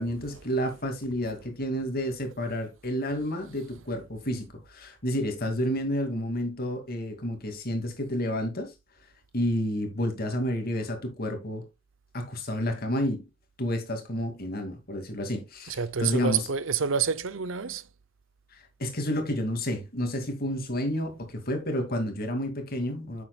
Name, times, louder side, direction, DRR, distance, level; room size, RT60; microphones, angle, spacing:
voice 1, 0.0-8.7 9.3-11.7 12.1-13.2 13.6-16.4 18.8-23.2, equal, 50° left, 2.4 m, -30 dB
voice 2, 15.7-17.9, right 6 dB, 70° right, 0.7 m, -28 dB
9.4 x 7.4 x 2.3 m
head